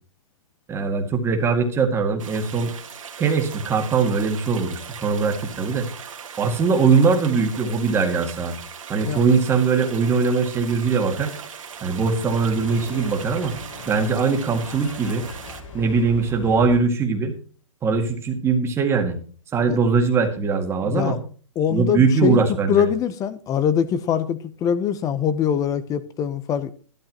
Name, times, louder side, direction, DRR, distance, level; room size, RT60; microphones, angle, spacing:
voice 1, 0.7-2.7 3.2-5.9 6.4-8.5 8.9-11.3 11.8-13.5 13.9-15.3 15.7-17.3 17.8-19.2 19.5-21.2 21.7-22.8, right 5 dB, 15° right, 2.0 m, -21 dB
sound 1, 2.2-15.6, right 7 dB, 75° right, 2.1 m, -39 dB
sound 2, 11.7-16.9, left 3 dB, 70° left, 6.2 m, -40 dB
voice 2, 20.8-21.2 21.6-22.4 22.7-26.7, left 8 dB, 20° left, 0.9 m, -23 dB
12.0 x 11.5 x 3.0 m
hypercardioid pair, 140°, 17 cm